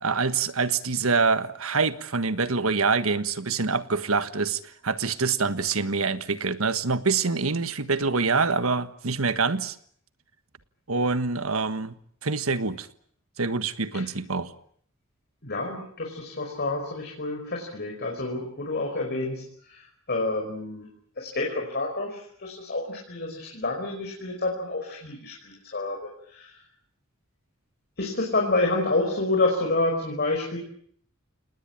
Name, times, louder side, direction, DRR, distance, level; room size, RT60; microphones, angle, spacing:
voice 1, 0.0-9.8 10.9-12.0 12.2-12.9 13.4-14.5, right 4 dB, 85° right, 12 dB, 1.5 m, -25 dB
voice 2, 15.4-20.9 21.2-26.6 28.0-30.6, left 2 dB, 50° left, 0 dB, 5.3 m, -28 dB
28.0 x 19.5 x 9.0 m, 0.63 s
head